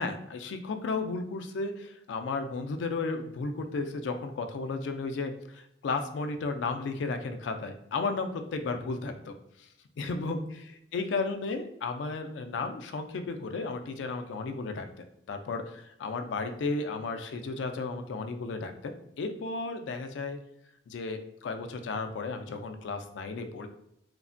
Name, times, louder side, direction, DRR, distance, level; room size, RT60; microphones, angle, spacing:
voice 1, 0.0-9.3 10.0-14.9 15.3-20.4 20.9-23.7, left 3 dB, 80° left, 6 dB, 0.3 m, -34 dB
3.1 x 2.1 x 2.5 m, 0.76 s
head